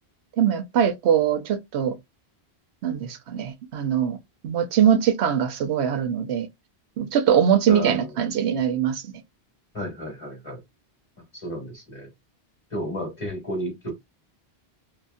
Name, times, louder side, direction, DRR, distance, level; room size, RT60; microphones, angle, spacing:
voice 1, 0.4-1.9 2.8-4.2 4.4-6.5 7.0-9.1, right 9 dB, 85° right, 0.9 m, -22 dB
voice 2, 7.7-8.1 9.7-10.6 11.3-12.1 12.7-13.9, equal, 30° left, 1.1 m, -32 dB
2.8 x 2.5 x 2.3 m
omnidirectional pair, 1.1 m